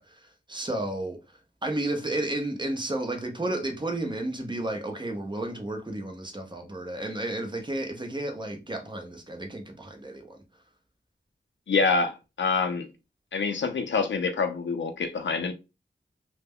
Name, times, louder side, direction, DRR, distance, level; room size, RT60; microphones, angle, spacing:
voice 1, 0.0-10.4, right 1 dB, 25° right, 0.7 m, -32 dB
voice 2, 11.7-12.9 13.3-15.5, left 4 dB, 85° left, 0.5 m, -26 dB
2.2 x 2.1 x 3.5 m
wide cardioid pair, 70°, 19 cm